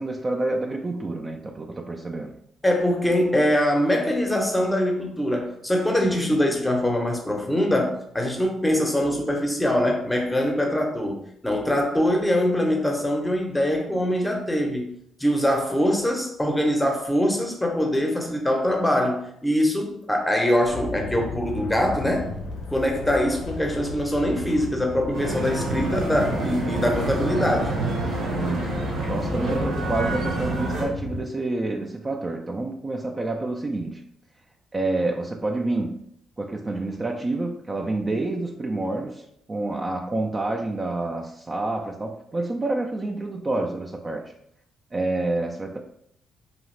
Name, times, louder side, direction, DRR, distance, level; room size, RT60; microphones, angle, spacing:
voice 1, 0.0-2.3 6.0-6.3 28.3-28.7 29.1-34.0 34.7-36.0 36.4-44.2 44.9-45.8, right 2 dB, 25° right, 1 dB, 0.3 m, -28 dB
voice 2, 2.6-14.9 15.2-22.3 22.7-27.7, equal, 10° left, 2 dB, 0.7 m, -23 dB
sound 1, 20.6-31.2, left 3 dB, 85° left, 0.6 m, -34 dB
sound 2, 25.1-30.9, right 2 dB, 80° right, 0.9 m, -28 dB
2.7 x 2.4 x 3.1 m, 0.71 s
cardioid pair, 90°, 0 cm